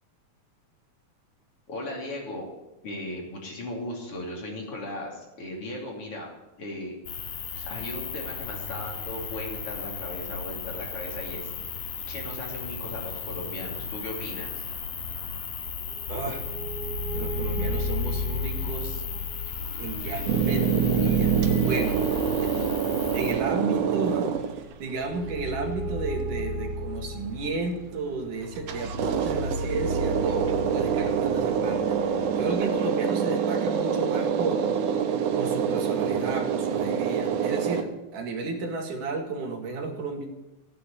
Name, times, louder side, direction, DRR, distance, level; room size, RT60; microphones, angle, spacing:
voice 1, 1.7-2.5 2.8-6.3 6.6-7.0 7.5-11.5 12.1-14.6, left 1 dB, 45° left, -1 dB, 4.0 m, -37 dB
sound 1, 7.1-23.3, left 6 dB, 70° left, 3.0 m, -36 dB
sound 2, 15.9-32.6, equal, 35° right, 2.5 m, -33 dB
voice 2, 16.1-16.4 17.2-19.3 19.8-21.3 21.6-22.1 22.3-22.5 23.1-24.3 24.8-32.0 32.4-34.7 35.4-40.3, right 3 dB, 85° right, 3 dB, 3.5 m, -33 dB
sound 3, 20.3-24.9 28.6-37.8, right 7 dB, 65° right, 2.0 m, -26 dB
15.5 x 9.8 x 8.5 m, 1.0 s
omnidirectional pair, 3.5 m